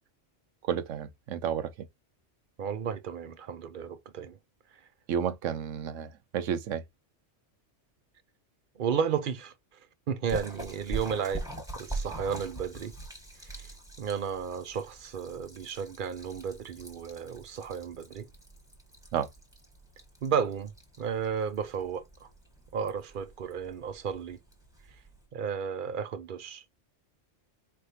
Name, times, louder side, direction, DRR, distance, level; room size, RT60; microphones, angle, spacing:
voice 1, 0.7-1.7 5.1-6.8 19.1-19.3, right 8 dB, 85° right, 1.1 m, -31 dB
voice 2, 2.6-4.4 8.8-9.5 10.1-11.5 11.7-13.0 13.4-13.7 14.0-18.3 20.2-20.7 21.0-22.3 22.7-24.4 25.3-26.6, right 7 dB, 50° right, 0.7 m, -33 dB
Splash splatter, 10.3-25.3, right 2 dB, 5° right, 1.2 m, -43 dB
4.4 x 3.4 x 2.7 m
omnidirectional pair, 1.3 m